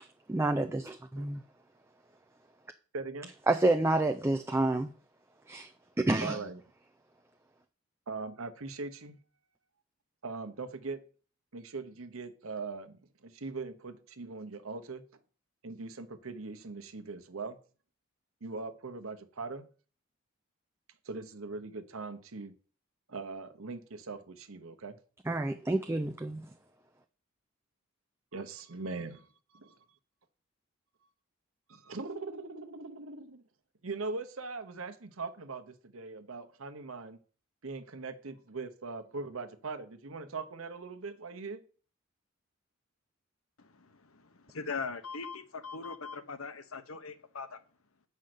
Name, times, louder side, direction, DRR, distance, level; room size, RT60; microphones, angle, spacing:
voice 1, 0.3-1.4 3.5-4.9 5.5-5.7 6.0-6.4 25.3-26.4, right 2 dB, 10° right, 0.4 m, -28 dB
voice 2, 2.9-3.3 6.2-6.6 8.1-9.2 10.2-11.0 11.5-15.0 15.6-17.6 18.4-19.7 21.0-22.5 23.1-25.0 28.3-29.3 29.5-29.8 31.7-33.4 33.8-37.2 37.6-41.6, right 3 dB, 80° right, 1.0 m, -41 dB
voice 3, 43.6-47.6, left 4 dB, 85° left, 1.0 m, -41 dB
7.8 x 5.6 x 6.5 m
head